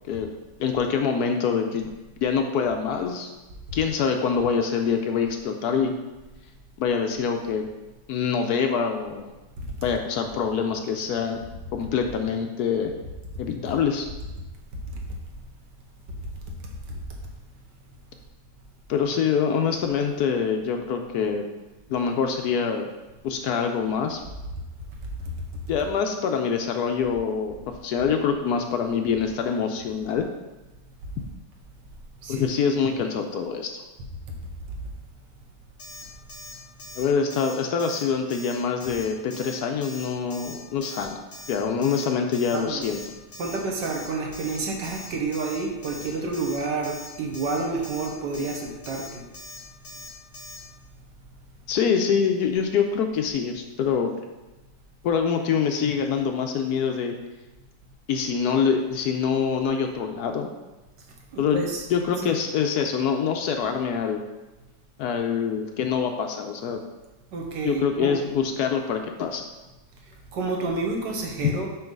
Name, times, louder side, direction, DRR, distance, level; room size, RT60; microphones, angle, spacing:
voice 1, 0.6-1.9 2.2-3.3 3.7-5.9 6.8-7.7 8.1-9.3 9.8-11.4 11.7-12.9 13.4-14.1 18.9-21.4 21.9-22.9 23.2-24.2 25.7-27.5 27.8-30.3 32.3-33.8 37.0-41.2 41.5-43.0 51.7-54.1 55.0-57.2 58.1-60.6 61.4-64.2 65.0-66.8 67.6-69.4 71.4-71.5, left 6 dB, 70° left, 4 dB, 1.0 m, -25 dB
Alarm, 35.8-36.0 36.3-36.5 36.8-37.0 37.3-37.5 37.8-38.0 38.3-38.5 38.8-39.0 39.3-39.5 39.8-40.1 40.3-40.5 40.8-41.0 41.3-41.6 41.8-42.1 42.3-42.6 42.8-43.1 43.3-43.6 43.8-44.1 44.3-44.6 44.8-45.1 45.3-45.6 45.8-46.1 46.3-46.6 46.8-47.1 47.3-47.6 47.8-48.1 48.3-48.6 48.8-49.1 49.3-49.6 49.8-50.1 50.3-50.6, left 1 dB, 40° left, 0.9 m, -42 dB
voice 2, 42.5-42.9 43.4-49.2 61.3-61.9 62.2-62.3 67.3-68.2 70.3-71.7, right 3 dB, 80° right, 0 dB, 1.6 m, -29 dB
7.0 x 3.2 x 5.2 m, 1.1 s
omnidirectional pair, 1.9 m